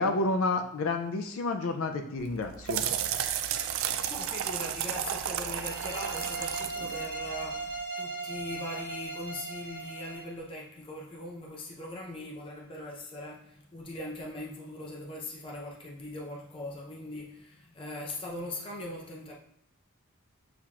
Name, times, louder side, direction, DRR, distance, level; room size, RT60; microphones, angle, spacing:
voice 1, 0.0-2.8, left 3 dB, 70° left, 5 dB, 0.4 m, -30 dB
sound 1, 2.2-7.8, right 9 dB, 70° right, 0.3 m, -33 dB
voice 2, 4.1-19.4, left 1 dB, 25° left, -1 dB, 0.6 m, -40 dB
sound 2, 5.5-10.3, right 3 dB, 50° left, 1.4 m, -38 dB
6.8 x 2.9 x 2.4 m, 0.71 s
head